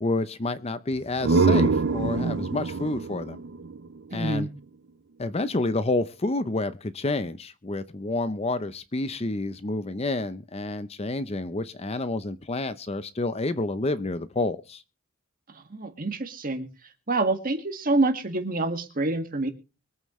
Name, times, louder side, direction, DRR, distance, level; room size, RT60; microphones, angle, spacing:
voice 1, 0.0-3.4 4.1-4.5 5.2-14.8, left 2 dB, 30° left, 0.6 m, -29 dB
sound 1, 0.9-4.6, right 4 dB, 55° right, 0.6 m, -25 dB
voice 2, 4.1-4.5 15.5-16.7 17.1-19.5, right 2 dB, 40° right, 1.9 m, -27 dB
23.5 x 8.9 x 3.2 m
head